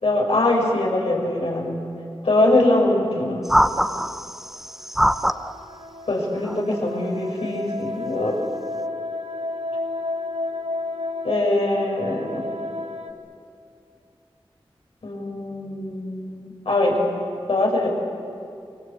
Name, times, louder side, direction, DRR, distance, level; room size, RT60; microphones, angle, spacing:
voice 1, 0.0-1.8 2.2-3.4 6.1-8.4 11.2-12.4 15.0-17.0 17.5-17.9, left 2 dB, 80° left, -2 dB, 6.2 m, -22 dB
preseknal shepot, 3.4-5.5 6.4-6.7, equal, 5° right, 0.8 m, -22 dB
sound 1, 4.7-13.1, left 2 dB, 75° right, 1.6 m, -32 dB
27.5 x 23.0 x 8.5 m, 2.5 s
wide cardioid pair, 65°, 10 cm